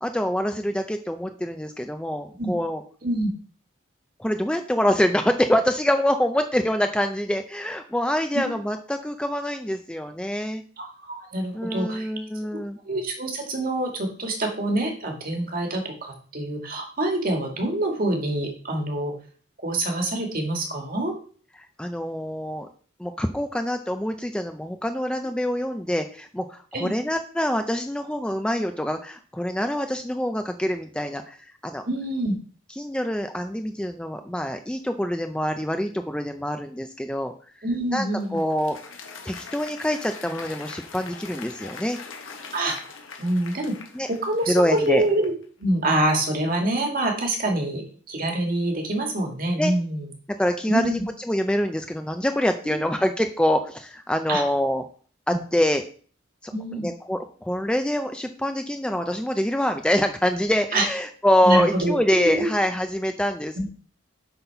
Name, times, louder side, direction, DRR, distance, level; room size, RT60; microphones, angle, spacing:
voice 1, 0.0-2.8 4.2-10.6 11.5-12.8 21.8-22.7 23.0-31.4 31.6-31.8 32.7-37.3 37.9-38.8 39.2-42.0 43.9-44.1 44.5-45.0 49.6-49.7 50.4-54.8 55.3-55.8 56.4-63.6, equal, 5° left, 6 dB, 0.4 m, -25 dB
voice 2, 10.8-12.1 12.8-19.1 19.6-21.1 26.7-26.9 31.8-32.3 37.6-38.4 42.5-42.8 43.2-43.7 44.1-45.3 45.6-50.1 50.7-51.0 52.7-52.8 54.3-54.4 56.5-56.9 60.7-60.9 61.4-61.9 62.2-62.5 63.6-63.7, right 1 dB, 45° right, 2 dB, 1.8 m, -26 dB
Applause, 37.8-45.5, left 5 dB, 80° left, 1.4 m, -42 dB
8.0 x 4.0 x 5.6 m, 0.43 s
head